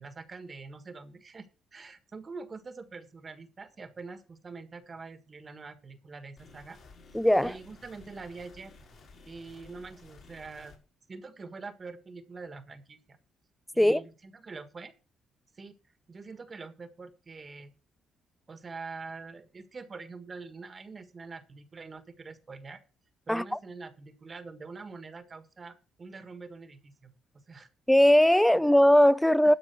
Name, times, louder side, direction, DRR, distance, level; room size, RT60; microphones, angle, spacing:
voice 1, 0.0-6.8 7.4-8.7 9.2-10.8 11.1-13.2 13.7-14.9 15.5-15.7 16.1-17.7 18.5-22.8 23.3-27.7 29.2-29.5, right 4 dB, 35° right, 1.6 m, -45 dB
sound 1, 6.4-10.8, left 3 dB, 60° left, 5.0 m, -54 dB
voice 2, 7.1-7.5 13.8-14.0 23.3-23.4 27.9-29.5, equal, 5° left, 0.5 m, -20 dB
12.5 x 5.3 x 6.8 m
cardioid pair, 90°, 0 cm